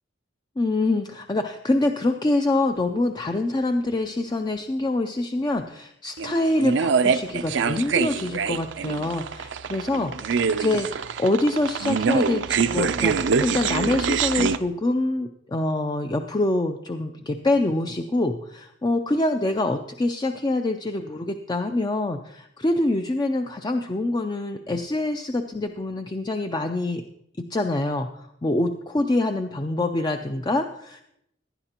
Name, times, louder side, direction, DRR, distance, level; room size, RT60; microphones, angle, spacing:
voice 1, 0.6-27.0 27.4-31.0, left 2 dB, 20° left, 6 dB, 0.4 m, -25 dB
sound 1, 6.2-14.6, right 5 dB, 70° right, 0.5 m, -24 dB
17.5 x 10.5 x 2.9 m, 0.78 s
head